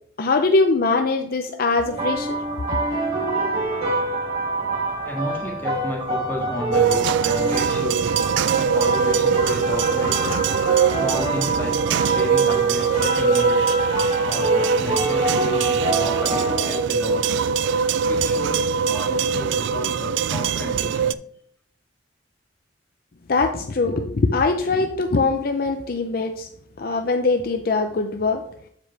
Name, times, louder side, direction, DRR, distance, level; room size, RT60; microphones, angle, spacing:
voice 1, 0.2-2.4 23.3-26.5 26.8-28.4, left 3 dB, 55° left, 6 dB, 0.5 m, -22 dB
sound 1, 1.8-16.8, right 2 dB, 35° right, 3.2 m, -26 dB
voice 2, 5.0-8.3 8.6-10.3 11.0-13.6 14.3-17.3 18.1-21.2, left 1 dB, 10° left, -1 dB, 1.7 m, -32 dB
sound 2, 6.7-21.1, right 6 dB, 80° right, 0.3 m, -22 dB
7.5 x 6.9 x 3.3 m, 0.64 s
head